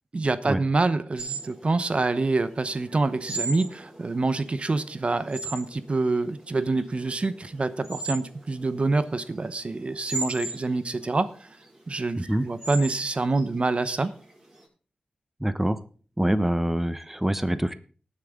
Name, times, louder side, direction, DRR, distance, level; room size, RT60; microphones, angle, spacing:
voice 1, 0.1-11.5 11.9-14.1, right 3 dB, 45° right, 13 dB, 0.9 m, -26 dB
sound 1, 1.2-14.6, right 3 dB, 25° right, 6.5 m, -38 dB
voice 2, 15.4-15.8 16.2-17.7, right 1 dB, 10° right, 12 dB, 0.9 m, -25 dB
19.0 x 7.3 x 3.7 m, 0.39 s
wide cardioid pair, 80°, 3 cm